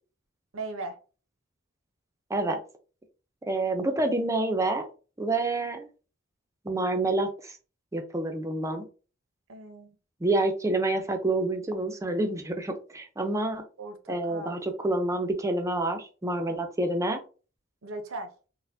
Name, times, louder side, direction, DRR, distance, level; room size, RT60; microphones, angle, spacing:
voice 1, 0.5-1.0 9.5-10.0 13.8-14.6 17.8-18.3, right 2 dB, 70° right, 0.6 m, -38 dB
voice 2, 3.5-4.8 5.2-5.9 6.6-7.6 7.9-8.9 10.2-13.6 14.1-17.2, right 2 dB, 15° right, 0.5 m, -28 dB
4.1 x 2.1 x 2.6 m
head